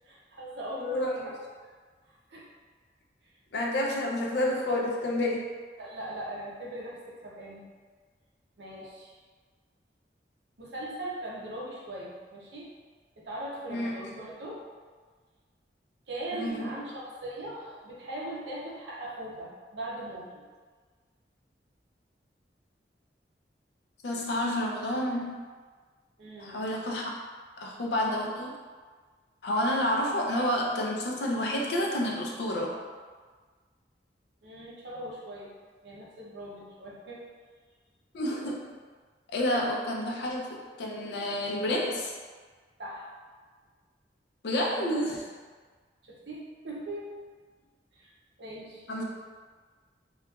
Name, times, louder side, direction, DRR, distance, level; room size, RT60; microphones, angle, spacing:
voice 1, 0.0-1.3 2.1-2.5 3.2-3.3 5.8-7.6 8.6-9.2 10.6-12.7 13.2-14.6 16.1-20.4 26.2-26.8 34.4-35.5 35.8-37.2 42.8-43.1 46.0-47.1 47.9-48.1 48.4-48.9, right 1 dB, 75° right, -5 dB, 0.6 m, -40 dB
voice 2, 0.8-1.1 3.5-5.5 13.7-13.9 16.3-16.7 24.0-25.4 26.4-27.0 27.6-28.6 29.4-32.7 38.1-38.7 39.3-42.1 44.4-45.3 48.9-49.0, left 1 dB, 75° left, -1 dB, 0.5 m, -29 dB
2.8 x 2.3 x 2.3 m, 1.5 s
head